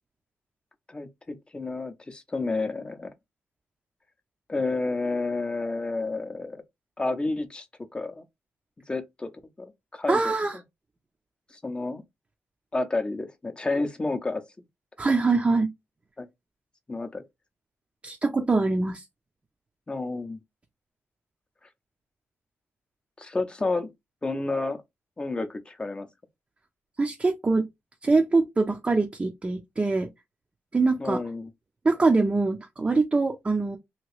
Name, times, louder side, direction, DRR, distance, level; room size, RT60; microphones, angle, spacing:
voice 1, 0.9-3.1 4.5-6.6 7.0-7.7 7.9-8.2 8.9-9.3 9.6-10.3 11.5-12.0 12.7-14.4 16.2-16.3 16.9-17.2 19.9-20.4 23.2-23.9 24.2-24.8 25.2-26.1 31.0-31.5, left 3 dB, 20° left, 0.6 m, -30 dB
voice 2, 10.1-10.6 15.0-15.7 18.0-19.0 27.0-27.7 28.0-30.1 30.7-31.2 31.8-33.8, right 3 dB, 25° right, 0.6 m, -23 dB
2.9 x 2.7 x 3.1 m
cardioid pair, 110°, 5 cm